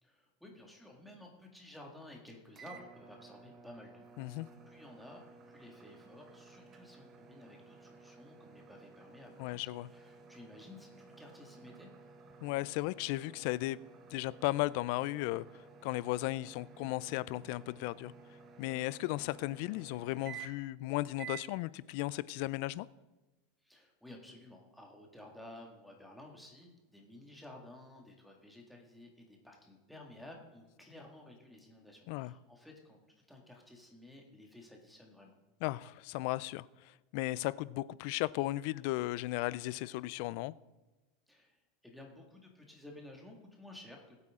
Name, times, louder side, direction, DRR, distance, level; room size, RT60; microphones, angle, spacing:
voice 1, 0.0-4.0 4.4-12.2 23.6-35.4 41.3-44.2, left 1 dB, ahead, 0 dB, 2.0 m, -54 dB
sound 1, 2.5-20.8 21.2-21.5, right 6 dB, 30° right, 1.1 m, -54 dB
voice 2, 9.4-9.9 12.4-13.8 14.1-15.4 15.8-18.1 18.6-22.9 32.1-32.3 35.6-36.7 37.1-40.5, left 18 dB, 55° left, 20 dB, 0.4 m, -35 dB
20.0 x 8.3 x 3.7 m, 1.1 s
supercardioid pair, 150°, 0 cm